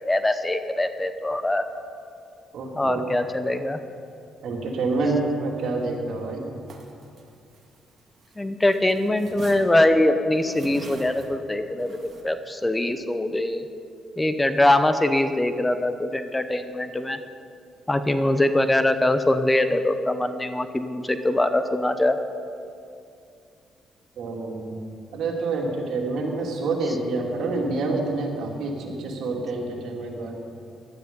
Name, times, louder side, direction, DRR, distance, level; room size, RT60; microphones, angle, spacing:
voice 1, 0.0-1.6 2.8-3.8 8.4-12.0 12.2-13.6 14.2-17.2 17.9-22.2, left 1 dB, 15° left, 9 dB, 0.8 m, -22 dB
voice 2, 2.5-3.1 4.4-6.5 24.2-24.8 25.1-30.4, right 3 dB, 75° right, 0 dB, 2.6 m, -27 dB
sound 1, 6.7-8.4 8.6-12.2, right 3 dB, 50° right, 2.0 m, -43 dB
16.0 x 12.5 x 5.4 m, 2.5 s
cardioid pair, 90°, 0 cm